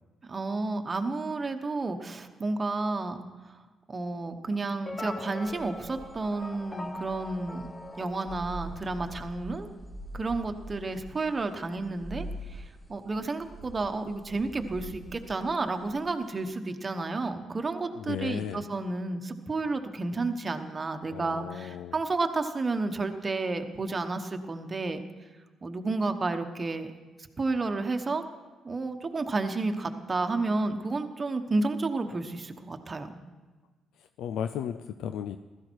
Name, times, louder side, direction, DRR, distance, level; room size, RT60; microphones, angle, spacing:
voice 1, 0.3-3.2 3.9-7.7 8.0-9.7 10.1-12.6 12.9-25.0 25.6-26.9 27.4-28.2 28.6-33.2, right 3 dB, 30° right, 6 dB, 1.1 m, -31 dB
sound 1, 4.9-9.2, left 2 dB, 20° left, 1.2 m, -42 dB
sound 2, 5.5-16.4, right 1 dB, ahead, 1.9 m, -44 dB
voice 2, 18.0-18.7 21.1-22.0 34.2-35.4, left 9 dB, 85° left, 9 dB, 0.4 m, -35 dB
15.5 x 13.0 x 4.6 m, 1.3 s
cardioid pair, 90°, 0 cm